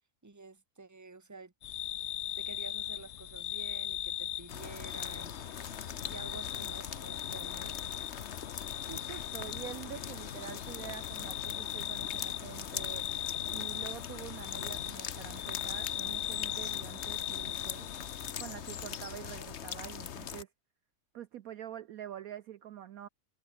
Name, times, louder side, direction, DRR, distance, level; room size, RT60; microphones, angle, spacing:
voice 1, 0.2-1.5 2.4-5.5 6.1-7.8, right 3 dB, 10° right, 1.4 m, -50 dB
sound 1, 1.6-18.3, left 12 dB, 65° left, 0.7 m, -39 dB
sound 2, 4.5-20.4, left 8 dB, 50° left, 1.1 m, -42 dB
voice 2, 8.9-13.1 13.5-17.9 18.4-20.5 21.1-23.1, right 11 dB, 65° right, 1.0 m, -46 dB
omnidirectional pair, 1.8 m